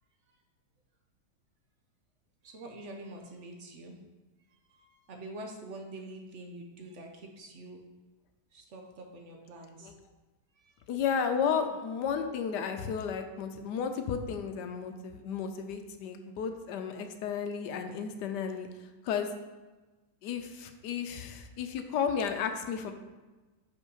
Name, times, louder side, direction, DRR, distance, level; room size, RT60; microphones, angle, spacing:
voice 1, 2.4-4.0 4.5-7.8 8.5-9.9 10.6-10.8, right 1 dB, 55° right, 2 dB, 0.9 m, -46 dB
voice 2, 10.9-19.3 20.2-22.9, left 7 dB, 70° left, 6 dB, 1.2 m, -33 dB
5.4 x 5.1 x 4.7 m, 1.2 s
omnidirectional pair, 2.0 m